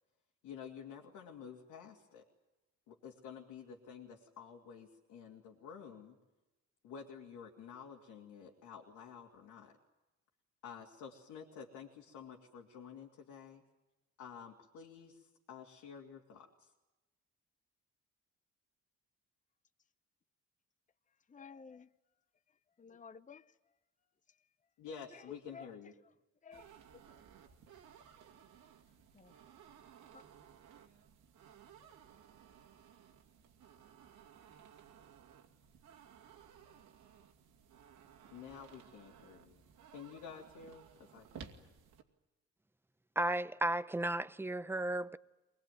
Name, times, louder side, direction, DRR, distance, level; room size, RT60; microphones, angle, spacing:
voice 1, 0.4-2.2 2.9-6.2 6.8-9.8 10.6-13.6 14.2-16.7 24.8-25.9 38.3-39.6 39.9-41.7, left 7 dB, 90° left, 2.7 m, -51 dB
voice 2, 21.3-21.9 22.8-23.5 24.3-24.4 25.1-25.7 26.4-27.2 29.1-29.3 30.1-30.2, left 5 dB, 25° left, 0.9 m, -54 dB
sound 1, 26.5-42.0, right 7 dB, 85° right, 2.6 m, -58 dB
voice 3, 43.2-45.2, right 1 dB, 10° right, 0.7 m, -34 dB
23.5 x 20.5 x 9.3 m
cardioid pair, 90°, 30 cm